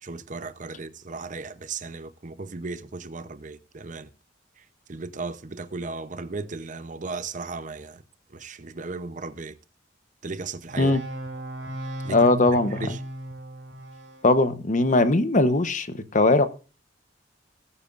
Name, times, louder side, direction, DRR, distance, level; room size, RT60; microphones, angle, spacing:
voice 1, 0.0-4.1 4.6-8.0 8.3-9.6 10.2-11.0 12.0-12.3 12.7-13.0, right 3 dB, 40° right, 0.7 m, -36 dB
sound 1, 10.7-14.3, right 1 dB, 80° right, 4.7 m, -36 dB
voice 2, 12.1-12.8 14.2-16.5, left 2 dB, 40° left, 1.0 m, -20 dB
19.0 x 8.6 x 2.5 m
head